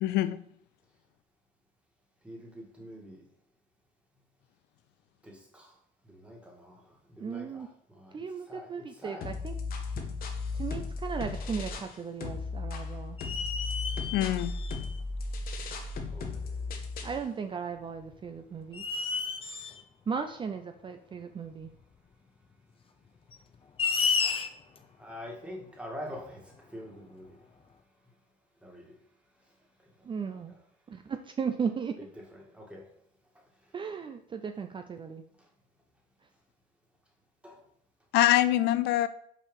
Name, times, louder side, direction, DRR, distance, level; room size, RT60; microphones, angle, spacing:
voice 1, 0.0-0.4 14.1-14.5 38.1-39.1, left 14 dB, 80° left, 13 dB, 0.5 m, -24 dB
voice 2, 2.2-3.2 5.2-5.7 6.0-9.3 16.1-16.7 24.8-27.4 28.6-29.0 30.5-30.6 32.0-32.9 37.4-37.6, equal, 5° right, -1 dB, 2.0 m, -45 dB
voice 3, 7.2-7.7 8.1-9.5 10.5-13.2 17.0-18.8 20.1-21.7 30.0-30.6 30.9-32.0 33.7-35.2, right 6 dB, 30° right, 7 dB, 0.5 m, -36 dB
sound 1, 9.2-11.9 12.2-17.2, left 3 dB, 60° left, 1.2 m, -36 dB
sound 2, 10.6-10.7 11.2-11.9 12.2-12.3 13.2-15.0 16.0-16.1 18.0-18.2 18.7-19.8 21.6-21.7 23.3-24.8, left 5 dB, 35° left, 0.7 m, -32 dB
5.8 x 4.7 x 5.4 m, 0.68 s
cardioid pair, 110°, 17 cm